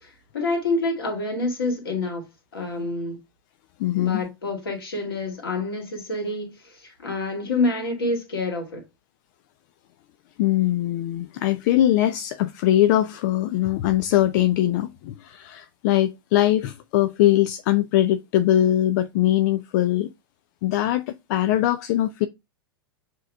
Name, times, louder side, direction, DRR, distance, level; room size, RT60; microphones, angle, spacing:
voice 1, 0.0-2.3 2.5-3.2 3.9-8.8, left 2 dB, 70° left, 2.1 m, -27 dB
voice 2, 3.8-4.2 10.4-20.1 20.6-22.3, left 13 dB, 50° left, 0.4 m, -21 dB
7.5 x 3.0 x 2.3 m
figure-of-eight pair, 90°, 13 cm